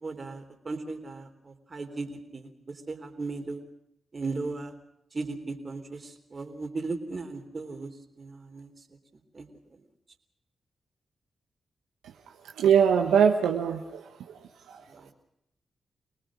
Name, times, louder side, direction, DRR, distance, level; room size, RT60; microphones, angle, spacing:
voice 1, 0.0-2.5 2.9-3.6 4.1-4.7 5.1-7.9 8.2-8.7 9.3-9.5, right 3 dB, 45° right, 6 dB, 3.5 m, -36 dB
voice 2, 12.6-14.4 14.7-14.8, right 7 dB, 85° right, 3 dB, 1.2 m, -23 dB
26.0 x 18.5 x 6.2 m, 0.81 s
supercardioid pair, 40°, 0 cm